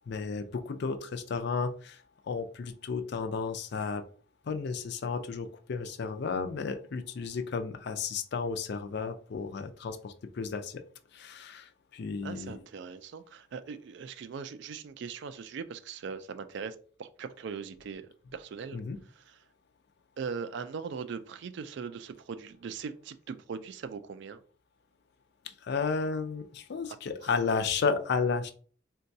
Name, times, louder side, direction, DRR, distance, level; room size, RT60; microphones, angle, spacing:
voice 1, 0.1-2.0 2.3-4.0 4.5-10.8 11.1-12.5 18.7-19.0 25.4-28.5, left 5 dB, 55° left, 0.4 m, -33 dB
voice 2, 12.2-18.8 20.2-24.4, right 6 dB, 60° right, 0.3 m, -40 dB
3.8 x 2.2 x 2.6 m
head